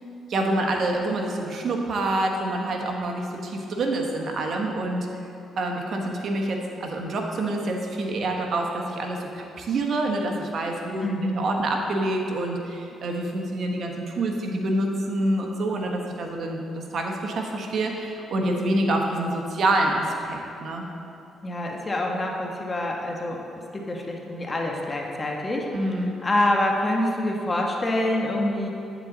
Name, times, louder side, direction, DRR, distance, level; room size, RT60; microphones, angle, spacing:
voice 1, 0.3-5.1 5.6-20.8 25.7-26.1, right 2 dB, 60° right, 2 dB, 1.1 m, -27 dB
voice 2, 11.0-11.4 21.4-23.4 23.7-28.7, left 1 dB, 25° left, 0 dB, 1.2 m, -26 dB
8.3 x 8.0 x 3.9 m, 2.8 s
cardioid pair, 90°, 0 cm